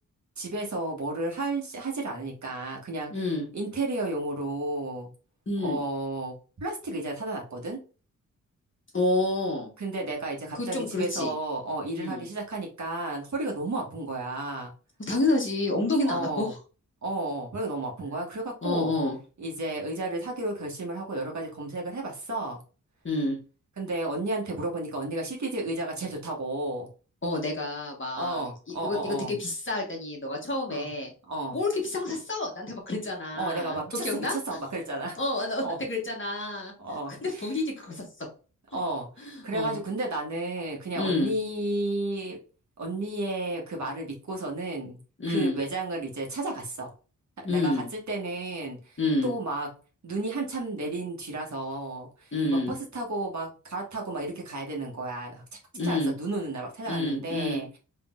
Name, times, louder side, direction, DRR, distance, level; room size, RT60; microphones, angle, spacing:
voice 1, 0.4-3.2 3.5-5.1 5.6-7.8 9.8-14.7 16.0-16.5 17.0-18.9 19.4-22.6 23.8-26.9 28.1-29.3 30.7-30.9 31.3-31.6 33.3-35.2 35.6-35.8 36.8-37.5 38.7-42.4 42.8-45.0 45.3-46.9 47.5-49.7 50.0-55.4 55.8-57.8, right 2 dB, 60° right, 0 dB, 1.3 m, -32 dB
voice 2, 3.1-3.5 5.5-5.8 8.9-9.7 10.5-11.3 12.0-12.2 15.1-16.6 18.6-19.2 23.0-23.4 27.2-28.4 28.8-31.1 31.5-34.4 35.2-36.7 37.2-38.3 39.2-39.8 41.0-41.3 45.2-45.6 47.4-47.9 49.0-49.3 52.3-52.8 55.7-56.1 56.9-57.6, left 2 dB, 40° left, 0 dB, 1.4 m, -29 dB
3.7 x 3.3 x 2.4 m, 0.36 s
wide cardioid pair, 85°, 32 cm